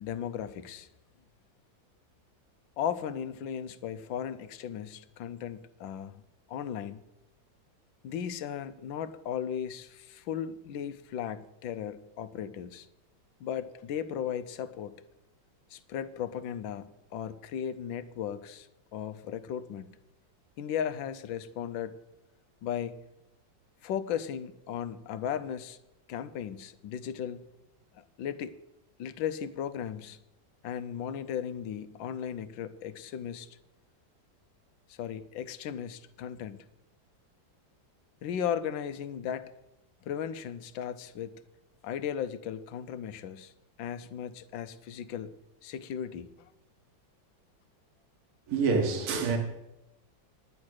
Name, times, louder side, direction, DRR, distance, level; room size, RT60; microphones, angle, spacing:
voice 1, 0.0-0.9 2.8-6.2 6.5-7.0 8.0-12.9 13.4-15.0 15.7-19.9 20.6-22.0 22.6-23.0 23.8-25.8 26.1-27.4 27.9-28.6 29.0-30.2 30.6-33.5 34.9-36.6 38.2-39.5 40.0-41.4 41.8-43.5 43.8-45.3 45.6-46.5, left 9 dB, 80° left, 1.5 m, -36 dB
voice 2, 48.5-49.4, right 4 dB, 55° right, 1.9 m, -26 dB
10.5 x 9.6 x 6.3 m
omnidirectional pair, 2.1 m